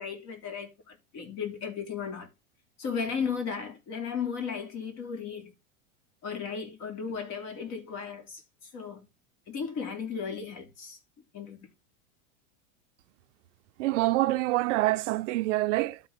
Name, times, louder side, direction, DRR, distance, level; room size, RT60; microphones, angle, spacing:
voice 1, 0.0-2.3 2.8-5.5 6.2-9.1 9.5-11.0 11.3-11.6, left 6 dB, 40° left, 3.2 m, -35 dB
voice 2, 13.8-16.0, right 18 dB, 70° right, 0.8 m, -26 dB
12.5 x 4.3 x 4.2 m
supercardioid pair, 125°, 38 cm